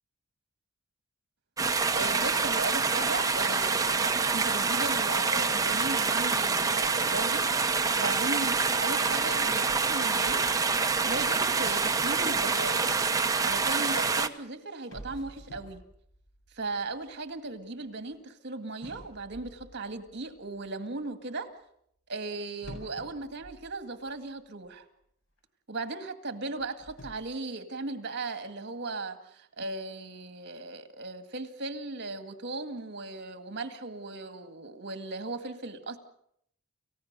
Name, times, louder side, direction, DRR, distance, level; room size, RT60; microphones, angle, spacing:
sound 1, 1.6-14.3, right 4 dB, 15° right, 0.9 m, -26 dB
voice 1, 1.9-7.5 8.0-12.9 13.4-15.8 16.5-21.5 22.1-24.8 25.7-36.0, right 3 dB, 55° right, 9 dB, 2.0 m, -37 dB
sound 2, 10.2-13.4 14.3-14.4 14.8-18.2 18.8-20.7 22.6-24.4 24.7-24.8 25.4-25.5 26.5-27.1, equal, 70° left, 7.7 m, -50 dB
29.5 x 15.5 x 6.7 m, 0.71 s
head